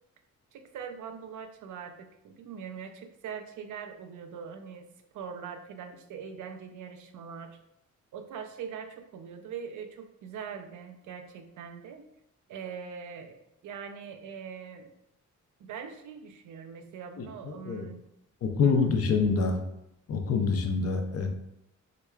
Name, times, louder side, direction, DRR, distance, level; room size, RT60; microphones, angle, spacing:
voice 1, 0.5-4.9 5.1-7.6 8.1-12.0 12.5-14.9 15.6-18.0 18.6-18.9, right 7 dB, 75° right, 7 dB, 0.5 m, -42 dB
voice 2, 17.2-17.9 18.4-19.6 20.1-21.3, left 5 dB, 50° left, 4 dB, 0.5 m, -26 dB
4.7 x 2.2 x 2.2 m, 0.82 s
cardioid pair, 110°, 30 cm